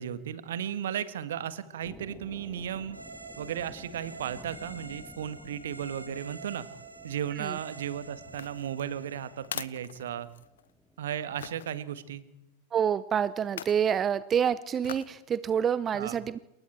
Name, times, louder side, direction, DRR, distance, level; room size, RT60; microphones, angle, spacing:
voice 1, 0.0-3.0 3.4-6.7 7.0-10.3 11.0-12.2 15.9-16.1, right 9 dB, 60° right, 14 dB, 1.6 m, -35 dB
sound 1, 1.8-11.7, equal, ahead, 1.6 m, -54 dB
sound 2, 2.9-9.6, right 3 dB, 85° right, 2.7 m, -47 dB
sound 3, 8.3-10.7 11.4-11.7 13.4-13.9 14.8-15.2 15.7-15.8, left 9 dB, 65° left, 0.9 m, -42 dB
voice 2, 12.7-16.4, right 8 dB, 25° right, 17 dB, 0.7 m, -27 dB
28.0 x 22.0 x 4.5 m, 0.92 s
figure-of-eight pair, 90°, 0 cm